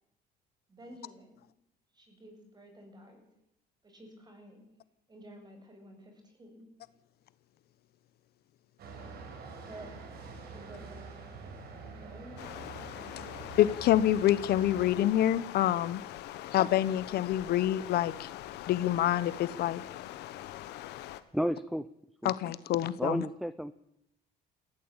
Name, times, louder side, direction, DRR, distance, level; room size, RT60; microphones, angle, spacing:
voice 1, 0.7-1.4 1.9-3.2 3.8-4.7 5.1-6.7 9.7-10.0 10.5-11.2 11.7-12.7 13.2-13.5 16.4-16.5, right 1 dB, 25° right, 4 dB, 7.7 m, -51 dB
sound 1, 8.8-14.9, right 4 dB, 70° right, 5.9 m, -46 dB
Stream, 12.4-21.2, left 14 dB, 85° left, 1.4 m, -43 dB
voice 2, 13.6-16.0 16.5-18.3 18.7-19.8 22.2-23.2, left 12 dB, 70° left, 16 dB, 1.0 m, -27 dB
voice 3, 21.3-21.9 22.2-22.3 23.0-23.7, equal, ahead, 14 dB, 0.8 m, -32 dB
19.5 x 15.5 x 8.9 m, 0.82 s
cardioid pair, 110°, 17 cm